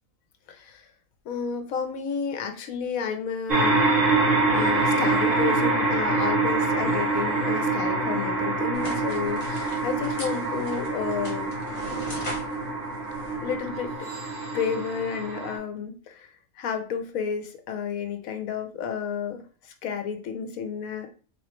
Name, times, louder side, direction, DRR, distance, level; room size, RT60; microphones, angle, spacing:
voice 1, 0.5-0.9 1.2-3.9 4.5-11.5 13.4-14.1 14.5-21.1, left 6 dB, 75° left, 6 dB, 1.1 m, -31 dB
sound 1, 3.5-15.6, right 3 dB, 65° right, 1.4 m, -25 dB
sound 2, 8.7-14.0, equal, 25° left, 1.1 m, -40 dB
3.6 x 3.0 x 3.0 m, 0.39 s
omnidirectional pair, 1.5 m